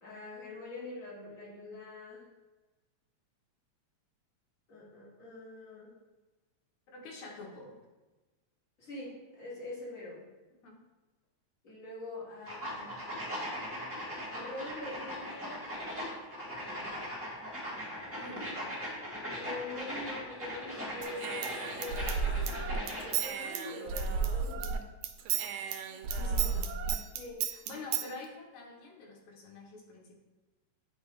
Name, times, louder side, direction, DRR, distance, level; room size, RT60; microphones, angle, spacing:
voice 1, 0.0-2.3 4.7-6.0 8.8-10.2 11.6-13.0 14.3-15.7 18.2-18.6 19.2-24.7 27.1-27.5, left 2 dB, 35° left, -6 dB, 1.7 m, -44 dB
voice 2, 6.9-7.8 10.6-10.8 18.1-18.5 26.1-26.8 27.7-30.1, left 3 dB, 75° left, 0 dB, 2.5 m, -46 dB
sound 1, 12.4-23.2, equal, 5° right, 1.2 m, -39 dB
Human voice / Scissors, 21.0-24.8 25.0-28.1, right 6 dB, 80° right, 1.7 m, -33 dB
9.0 x 3.7 x 3.2 m, 1.2 s
omnidirectional pair, 3.3 m